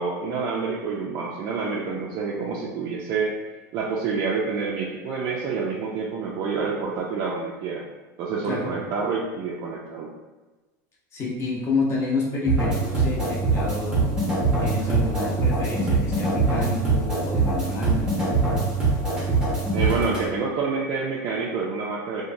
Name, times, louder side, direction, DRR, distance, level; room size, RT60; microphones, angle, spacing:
voice 1, 0.0-3.4 3.7-7.9 8.2-10.1 19.7-22.2, right 4 dB, 45° right, -4 dB, 0.4 m, -28 dB
voice 2, 11.1-14.1 14.6-18.1, left 3 dB, 25° left, -4 dB, 0.7 m, -29 dB
sound 1, 12.5-20.3, right 3 dB, 5° right, 0.7 m, -23 dB
3.0 x 2.1 x 2.5 m, 1.2 s
supercardioid pair, 140°, 9 cm